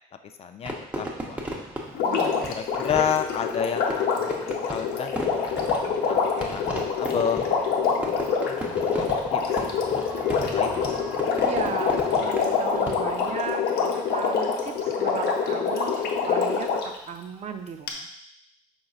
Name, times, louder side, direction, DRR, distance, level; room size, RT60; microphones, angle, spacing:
voice 1, 0.4-1.4 2.5-5.3 5.8-7.4 8.0-9.6 9.9-10.9, left 8 dB, 35° left, 7 dB, 0.4 m, -31 dB
Fireworks, 0.6-13.4, right 1 dB, 10° right, 0.7 m, -36 dB
Water, 1.9-17.0 17.9-18.0, left 5 dB, 75° left, 0.8 m, -26 dB
voice 2, 2.0-2.6 11.4-18.1, right 6 dB, 40° right, 7 dB, 0.4 m, -36 dB
5.2 x 3.8 x 2.4 m, 0.77 s
cardioid pair, 110°, 17 cm